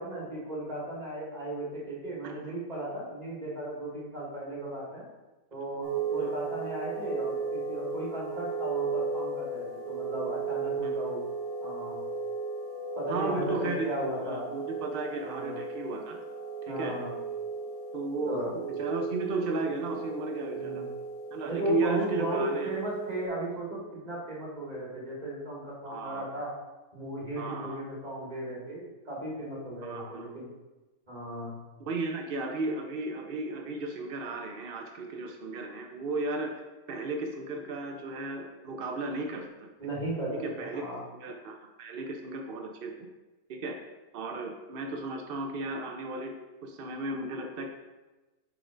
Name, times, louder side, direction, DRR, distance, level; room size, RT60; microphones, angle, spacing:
voice 1, 0.0-5.0 5.5-11.2 11.6-12.0 13.0-14.4 15.2-15.6 16.7-17.1 18.3-18.5 20.5-20.9 21.5-26.5 26.9-30.5 31.1-31.6 39.8-41.0, right 1 dB, 25° right, -5 dB, 2.3 m, -35 dB
sound 1, 5.8-23.3, right 4 dB, 45° right, 1.6 m, -35 dB
voice 2, 13.1-13.9 14.2-16.2 16.7-17.0 17.9-20.8 21.3-22.7 25.8-26.2 27.4-27.8 29.8-30.3 31.8-36.5 36.9-39.7 40.4-40.8 41.2-43.1 43.5-43.8 44.1-46.3 46.6-47.7, right 3 dB, 70° right, 3 dB, 0.5 m, -34 dB
6.1 x 4.6 x 4.9 m, 1.1 s
omnidirectional pair, 1.8 m